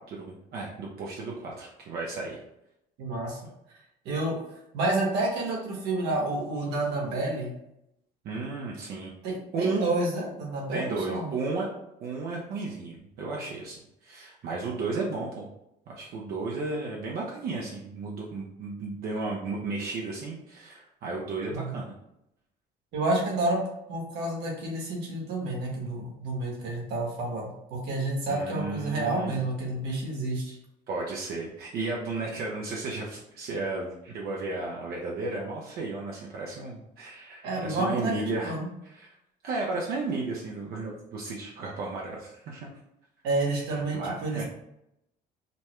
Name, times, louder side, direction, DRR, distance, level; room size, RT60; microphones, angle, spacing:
voice 1, 0.1-2.4 8.2-9.2 9.5-10.0 10.7-11.7 12.0-15.5 15.9-21.9 28.3-29.4 30.9-38.6 38.8-39.1 39.4-42.7 43.7-44.4, right 3 dB, 65° right, -2 dB, 0.8 m, -34 dB
voice 2, 3.0-3.4 4.0-4.4 4.7-7.5 9.2-11.3 21.5-21.8 22.9-23.6 23.9-30.6 37.4-38.7 43.2-44.4, right 2 dB, 90° right, -2 dB, 1.4 m, -29 dB
5.3 x 2.2 x 3.1 m, 0.82 s
cardioid pair, 110°, 17 cm